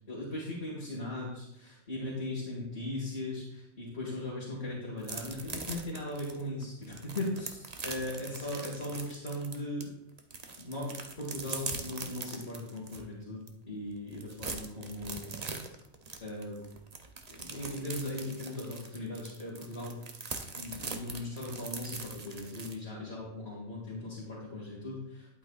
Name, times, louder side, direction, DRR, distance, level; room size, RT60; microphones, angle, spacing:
voice 1, 0.1-9.9 10.6-15.3 16.2-16.6 17.3-20.0 20.6-25.4, left 1 dB, 55° left, -6 dB, 2.3 m, -38 dB
sound 1, 5.0-9.8 10.2-13.0 13.5-13.6 13.9-22.7, right 4 dB, 35° right, 0.8 m, -42 dB
11.5 x 8.4 x 2.4 m, 0.83 s
omnidirectional pair, 1.3 m